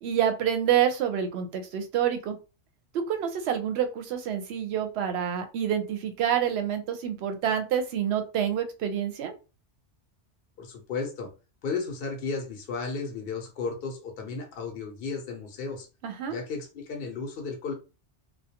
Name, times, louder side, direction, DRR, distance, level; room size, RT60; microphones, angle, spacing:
voice 1, 0.0-2.4 2.9-9.3 16.0-16.4, right 9 dB, 65° right, 7 dB, 0.8 m, -27 dB
voice 2, 10.6-11.3 11.6-15.9 16.3-17.7, left 4 dB, 60° left, 2 dB, 0.8 m, -34 dB
2.3 x 2.2 x 2.8 m, 0.31 s
omnidirectional pair, 1.2 m